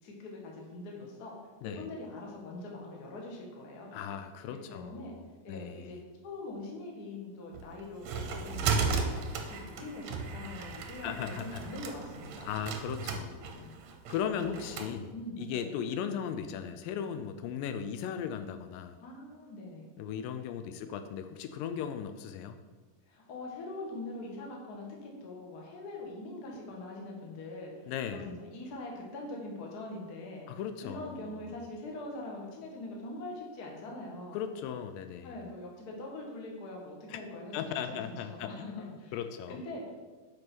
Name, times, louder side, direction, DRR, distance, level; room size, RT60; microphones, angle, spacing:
voice 1, 0.0-1.3 1.6-4.0 4.5-5.1 5.4-6.0 6.2-12.5 13.5-13.8 14.4-14.8 15.1-15.7 19.0-19.9 23.1-34.4 35.2-37.6 37.9-38.0 38.3-38.7 39.0-39.1 39.5-40.0, left 2 dB, 45° left, -1 dB, 1.3 m, -43 dB
voice 2, 3.9-5.2 5.5-6.0 11.0-11.6 12.5-13.5 14.1-19.0 20.0-22.6 27.9-28.3 30.5-31.3 34.3-35.4 37.1-37.2 37.5-39.6, left 8 dB, 80° left, 8 dB, 2.2 m, -37 dB
sound 1, 7.5-14.9, right 5 dB, 70° right, 1.7 m, -35 dB
8.2 x 5.3 x 6.1 m, 1.3 s
omnidirectional pair, 4.1 m